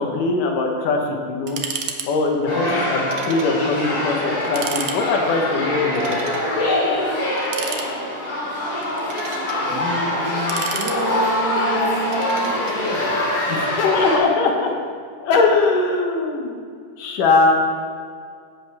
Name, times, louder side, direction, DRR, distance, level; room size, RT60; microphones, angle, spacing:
voice 1, 0.0-1.6 2.1-6.2 13.5-14.7 15.2-16.6 17.0-17.5, left 3 dB, 80° left, 2 dB, 2.7 m, -21 dB
sound 1, 1.5-2.1 2.3-2.4 3.1-3.5 3.9-4.0 4.4-5.0 5.9-6.5 7.4-8.2 8.8-9.6 10.2-11.4 12.1-12.8, right 7 dB, 80° right, 1.2 m, -32 dB
sound 2, 2.5-14.2, left 1 dB, 60° left, 3.5 m, -23 dB
voice 2, 9.6-13.2, right 1 dB, 35° right, -6 dB, 2.1 m, -29 dB
16.5 x 7.9 x 3.4 m, 2.1 s
omnidirectional pair, 3.6 m